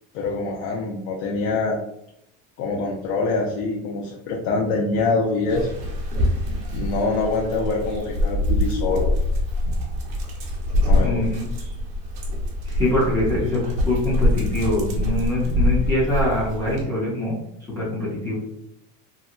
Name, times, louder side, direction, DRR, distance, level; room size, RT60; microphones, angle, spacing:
voice 1, 0.1-1.8 2.6-5.7 6.7-9.1 10.9-11.3, left 3 dB, 85° left, -1 dB, 0.7 m, -24 dB
Dog, 5.5-16.8, left 1 dB, 55° right, 0.8 m, -24 dB
voice 2, 11.0-11.4 12.7-17.4 17.7-18.4, left 1 dB, 10° left, -8 dB, 0.4 m, -24 dB
2.9 x 2.6 x 2.4 m, 0.78 s
cardioid pair, 180°, 38 cm